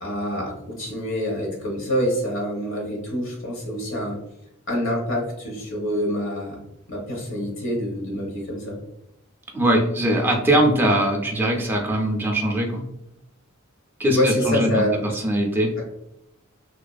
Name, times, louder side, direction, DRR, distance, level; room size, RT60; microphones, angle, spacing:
voice 1, 0.0-4.2 4.7-6.6 6.9-8.8 14.1-15.0, equal, 65° left, -1 dB, 0.9 m, -26 dB
voice 2, 9.5-12.8 14.0-15.7, right 1 dB, 10° right, 0 dB, 0.5 m, -21 dB
2.6 x 2.4 x 2.3 m, 0.83 s
head